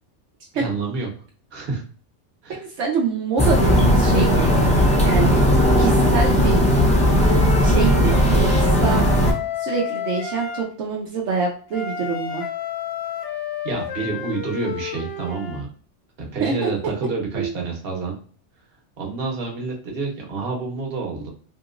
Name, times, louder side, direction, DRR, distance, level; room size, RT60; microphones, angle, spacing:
voice 1, 0.5-1.1 1.5-1.8 2.4-2.6 13.6-15.7 16.2-18.2 19.0-21.3, right 4 dB, 55° right, 0 dB, 1.2 m, -28 dB
voice 2, 2.6-4.5 5.0-5.4 5.8-6.6 7.6-12.4 16.4-16.7 17.3-17.5, right 5 dB, 80° right, -2 dB, 1.0 m, -25 dB
sound 1, 3.4-9.3, equal, 10° left, 0.5 m, -17 dB
Wind instrument woodwind instrument, 6.5-10.7 11.7-15.6, left 7 dB, 80° left, 1.0 m, -31 dB
2.9 x 2.9 x 2.4 m, 0.43 s
omnidirectional pair, 1.2 m